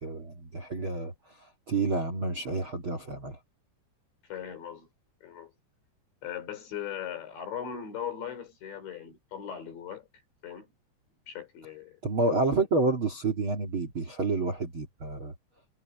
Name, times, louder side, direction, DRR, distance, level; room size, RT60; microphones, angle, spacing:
voice 1, 0.0-3.4 12.0-15.3, right 3 dB, 35° right, 2.7 m, -29 dB
voice 2, 4.3-4.9 5.2-5.5 6.2-10.1 10.4-10.7 11.3-12.0, left 9 dB, 75° left, 7.2 m, -39 dB
omnidirectional pair, 5.2 m